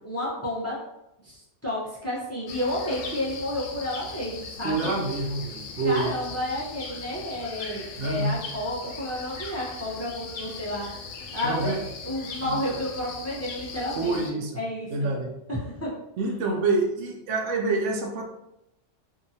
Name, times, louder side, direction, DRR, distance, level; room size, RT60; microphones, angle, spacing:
voice 1, 0.0-0.7 1.2-4.9 5.8-10.9 11.3-15.2 15.5-15.9, left 1 dB, 20° left, -6 dB, 0.5 m, -31 dB
sound 1, 2.5-14.3, left 4 dB, 80° left, 0.9 m, -39 dB
voice 2, 4.6-6.1 8.0-8.4 11.4-11.8 12.4-12.6 14.0-14.6 14.9-15.3 16.2-18.2, right 3 dB, 75° right, 1 dB, 0.9 m, -27 dB
2.7 x 2.4 x 2.7 m, 0.87 s
omnidirectional pair, 1.3 m